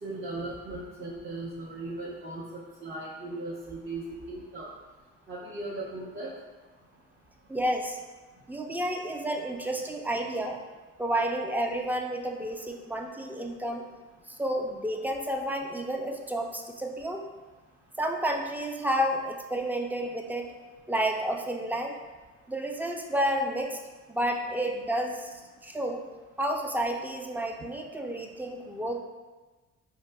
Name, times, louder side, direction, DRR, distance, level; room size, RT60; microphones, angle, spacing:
voice 1, 0.0-4.7 5.3-6.3, right 2 dB, 40° right, -8 dB, 0.8 m, -37 dB
voice 2, 7.5-8.0 8.5-10.6 11.0-13.9 14.3-17.2 18.0-20.5 20.9-21.9 22.5-23.8 24.1-26.0 26.4-29.0, right 1 dB, 5° right, 2 dB, 0.3 m, -30 dB
4.6 x 2.7 x 2.2 m, 1.3 s
cardioid pair, 90°, 30 cm